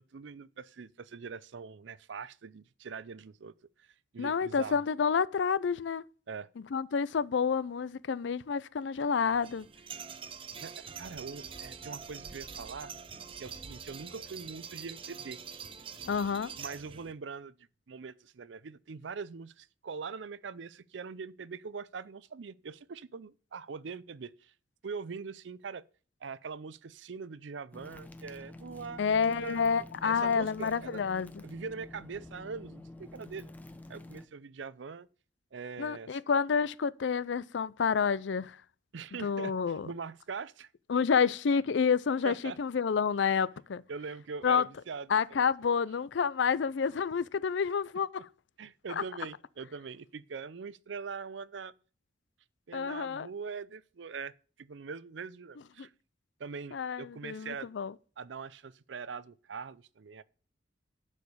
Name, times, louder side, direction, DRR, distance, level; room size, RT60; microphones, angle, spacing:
voice 1, 0.0-4.8 6.3-6.5 10.6-12.9 13.4-15.4 16.6-17.5 17.9-24.5 24.8-25.9 26.2-29.6 30.0-31.0 31.4-33.5 33.9-35.1 35.5-36.2 38.9-40.7 42.2-42.6 43.9-45.5 48.6-51.7 52.7-55.9 56.4-57.7 58.2-60.2, right 5 dB, 80° right, 0.5 m, -42 dB
voice 2, 4.2-6.0 6.7-9.7 16.1-16.5 29.0-31.4 35.8-38.6 39.2-39.9 40.9-43.8 44.4-44.7 45.1-48.3 48.9-49.0 52.7-53.3 55.8-55.9 56.7-57.9, left 6 dB, 75° left, 0.4 m, -29 dB
sound 1, 9.3-17.1, right 6 dB, 30° right, 0.5 m, -45 dB
sound 2, 27.7-34.3, left 2 dB, 10° left, 0.7 m, -48 dB
10.5 x 4.9 x 7.0 m
head